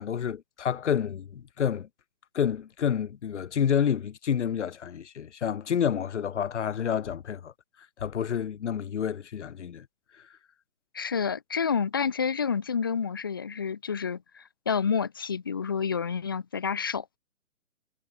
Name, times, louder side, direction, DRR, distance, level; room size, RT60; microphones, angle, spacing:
voice 1, 0.0-1.9 2.3-7.5 8.0-9.9, left 8 dB, 60° left, 2.1 m, -29 dB
voice 2, 10.9-17.2, left 6 dB, 20° left, 0.4 m, -29 dB
hypercardioid pair, 150°, 39 cm